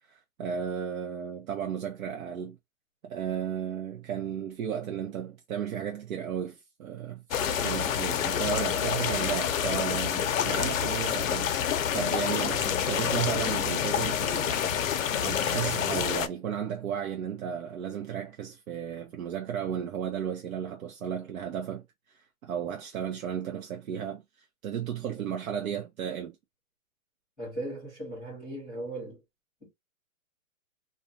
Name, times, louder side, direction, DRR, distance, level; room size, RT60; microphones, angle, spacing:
voice 1, 0.1-2.6 3.0-11.6 11.9-21.9 22.4-26.4, right 8 dB, 75° right, 0.7 m, -34 dB
sound 1, 7.3-16.3, left 9 dB, 65° left, 0.5 m, -28 dB
voice 2, 27.4-29.2 29.6-29.7, right 1 dB, ahead, 0.8 m, -38 dB
2.4 x 2.1 x 2.6 m
hypercardioid pair, 170°, 42 cm